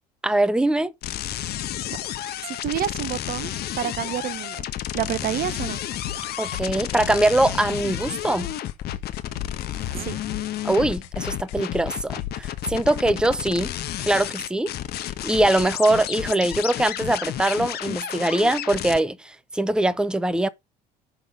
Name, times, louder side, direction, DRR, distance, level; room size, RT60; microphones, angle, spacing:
voice 1, 0.2-0.9 6.4-8.5 10.6-13.7 14.0-14.7 15.2-20.5, right 1 dB, 5° right, 0.8 m, -22 dB
sound 1, 1.0-19.0, left 12 dB, 50° left, 1.1 m, -31 dB
voice 2, 2.4-4.7 4.9-5.8 9.9-10.2, right 11 dB, 45° right, 0.8 m, -29 dB
sound 2, 5.6-13.1, left 12 dB, 75° left, 1.3 m, -37 dB
11.0 x 3.8 x 5.0 m
hypercardioid pair, 65°, 20 cm